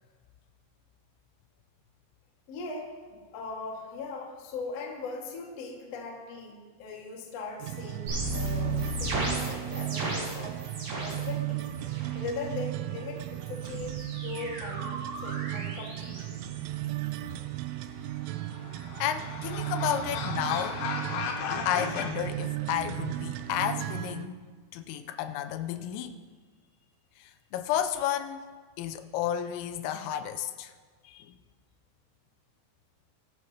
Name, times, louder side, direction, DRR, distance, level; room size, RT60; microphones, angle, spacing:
voice 1, 2.5-2.9 3.3-10.6 11.0-11.7 12.1-14.9 15.2-16.4, left 3 dB, 55° left, -1 dB, 1.8 m, -39 dB
sound 1, 7.6-24.3, right 15 dB, 85° right, 2.9 m, -35 dB
sound 2, 8.1-11.3 11.6-12.2 13.2-17.3, equal, 60° right, 6.4 m, -36 dB
sound 3, 18.2-22.1, left 6 dB, 75° left, 3.1 m, -36 dB
voice 2, 19.0-20.8 21.7-24.4 24.7-26.2 27.2-28.4 28.8-30.7 31.1-31.3, left 10 dB, 90° left, 8 dB, 3.2 m, -32 dB
22.0 x 10.5 x 2.9 m, 1.5 s
omnidirectional pair, 5.7 m